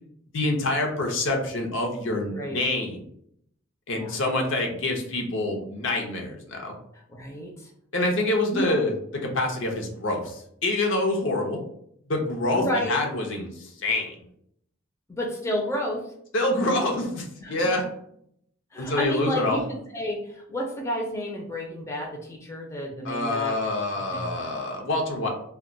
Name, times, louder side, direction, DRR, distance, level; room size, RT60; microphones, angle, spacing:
voice 1, 0.3-3.0 3.9-6.7 7.9-8.9 9.2-11.6 12.1-14.1 16.3-17.8 18.8-19.6 23.0-25.3, left 2 dB, 70° left, 1 dB, 0.6 m, -26 dB
voice 2, 7.1-7.7 8.5-8.7 12.5-13.0 15.1-16.0 17.4-17.6 18.7-23.7 24.1-24.3, equal, 15° left, -1 dB, 0.5 m, -31 dB
2.2 x 2.2 x 3.7 m, 0.69 s
head